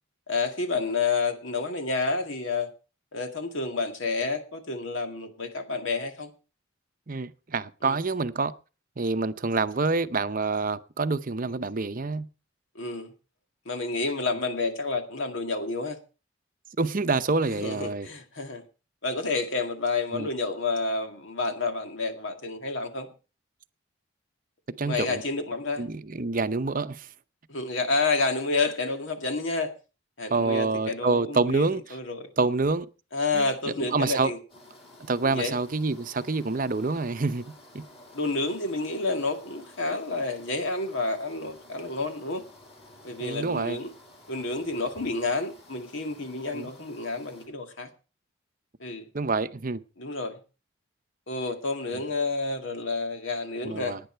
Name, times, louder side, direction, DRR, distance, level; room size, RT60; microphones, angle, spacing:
voice 1, 0.3-2.7 3.1-6.3 7.8-7.9 12.8-13.1 13.7-16.0 17.5-18.6 19.0-23.1 24.8-25.8 27.5-29.7 30.2-31.7 31.9-32.3 33.1-34.4 35.2-35.6 38.1-42.4 43.0-43.9 44.3-47.9 48.8-49.0 50.0-50.4 51.3-54.0, left 3 dB, 70° left, 2.1 m, -29 dB
voice 2, 7.1-8.5 9.0-12.3 16.8-18.1 20.1-20.3 24.8-25.2 25.8-27.1 30.3-32.0 32.4-32.9 33.3-33.5 33.8-34.3 35.0-37.5 37.7-37.8 43.2-43.8 46.5-46.7 49.1-49.8 53.6-54.0, right 3 dB, 40° right, 0.7 m, -27 dB
sound 1, 34.5-47.5, left 1 dB, 30° left, 6.5 m, -52 dB
17.5 x 9.8 x 4.5 m
head